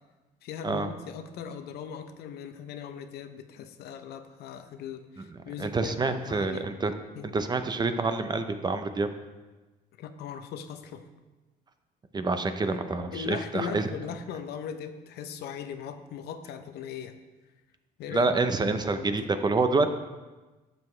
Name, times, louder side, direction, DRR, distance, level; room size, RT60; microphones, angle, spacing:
voice 1, 0.4-6.7 7.1-7.3 10.0-11.0 12.7-12.8 13.1-17.2 18.0-18.3 18.6-19.3, left 7 dB, 75° left, 9 dB, 0.7 m, -39 dB
voice 2, 5.6-6.9 7.2-9.1 12.1-13.9 18.1-19.9, right 3 dB, 25° right, 9 dB, 0.7 m, -27 dB
12.0 x 7.7 x 3.3 m, 1.2 s
cardioid pair, 110°, 17 cm